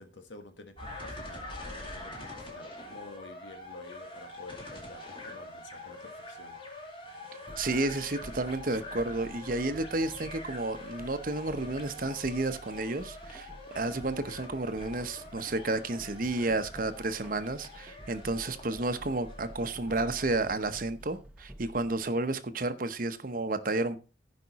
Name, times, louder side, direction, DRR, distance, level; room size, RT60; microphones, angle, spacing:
voice 1, 0.0-1.5 1.8-6.6, left 2 dB, 90° left, 1.6 m, -50 dB
sound 1, 0.8-20.5, left 2 dB, 30° left, 2.3 m, -45 dB
sound 2, 7.5-22.0, right 1 dB, 5° right, 0.9 m, -49 dB
voice 2, 7.6-13.5 13.7-24.0, right 2 dB, 50° right, 0.8 m, -31 dB
15.5 x 5.2 x 4.1 m
head